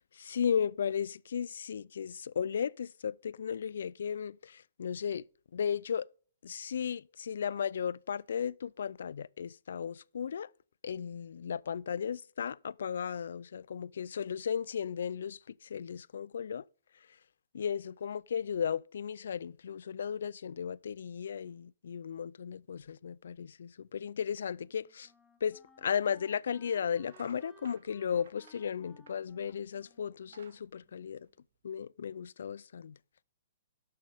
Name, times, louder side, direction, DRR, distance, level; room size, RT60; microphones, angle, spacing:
voice 1, 0.1-5.3 5.5-6.1 6.4-10.5 10.8-16.6 17.5-25.1 25.4-31.3 31.6-33.0, left 7 dB, 75° left, 0.3 m, -35 dB
Wind instrument woodwind instrument, 24.5-31.3, left 2 dB, 5° left, 0.8 m, -63 dB
sound 1, 25.7-25.8 26.4-26.6 27.0-29.7 30.1-31.7, right 6 dB, 75° right, 1.2 m, -61 dB
12.0 x 6.5 x 3.5 m
hypercardioid pair, 170°, 0 cm